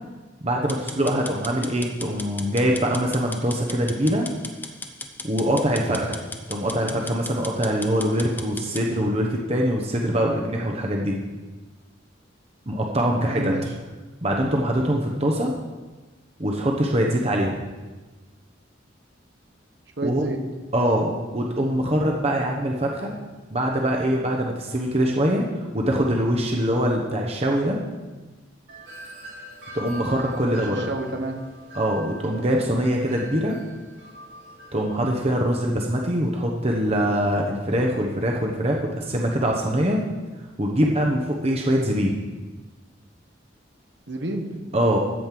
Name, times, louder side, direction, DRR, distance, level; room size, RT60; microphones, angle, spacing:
voice 1, 0.4-4.3 5.2-6.2 6.5-11.2 12.7-13.5 14.2-15.5 16.4-17.6 20.0-20.3 20.7-23.1 23.5-27.8 29.7-30.8 31.7-33.6 34.7-40.0 40.6-42.1 44.7-45.0, equal, 35° right, 0 dB, 1.1 m, -23 dB
sound 1, 0.7-8.9, left 2 dB, 10° left, 0.9 m, -37 dB
voice 2, 13.2-13.7 20.0-20.4 30.5-31.4 44.1-44.6, right 2 dB, 60° right, 3 dB, 1.5 m, -30 dB
Wind chime, 28.7-35.4, right 1 dB, 75° right, 3.8 m, -42 dB
14.0 x 5.4 x 7.6 m, 1.2 s
head